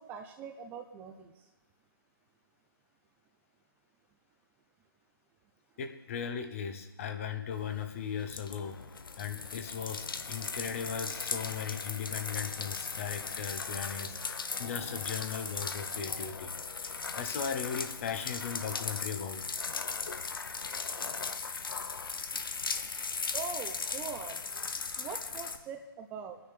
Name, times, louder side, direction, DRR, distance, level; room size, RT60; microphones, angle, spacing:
voice 1, 0.0-1.4 23.3-26.4, right 6 dB, 15° right, 6 dB, 0.6 m, -43 dB
voice 2, 5.8-8.8 9.2-16.5 16.8-19.4, left 7 dB, 35° left, 6 dB, 1.1 m, -38 dB
sound 1, 7.5-25.6, left 5 dB, 65° left, 1.1 m, -38 dB
23.0 x 9.8 x 3.3 m, 1.1 s
figure-of-eight pair, 140°, 13 cm